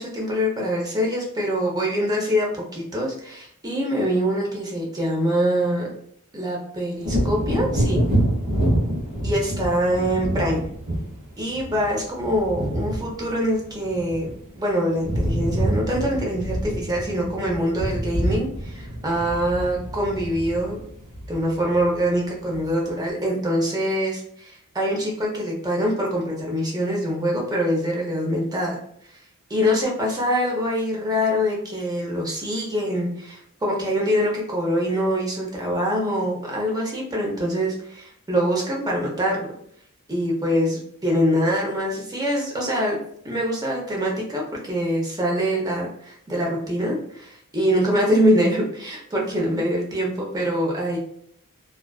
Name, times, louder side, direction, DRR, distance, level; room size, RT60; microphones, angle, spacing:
voice 1, 0.0-2.5 2.7-5.9 6.3-8.0 9.2-10.6 11.4-14.3 14.6-20.8 21.3-28.8 29.5-39.5 40.1-43.0 43.2-51.0, equal, 15° right, -2 dB, 0.5 m, -24 dB
Wind / Thunder, 7.0-14.6 14.9-22.1 22.5-22.7, right 1 dB, 70° right, 1.0 m, -27 dB
2.4 x 2.3 x 2.2 m, 0.68 s
head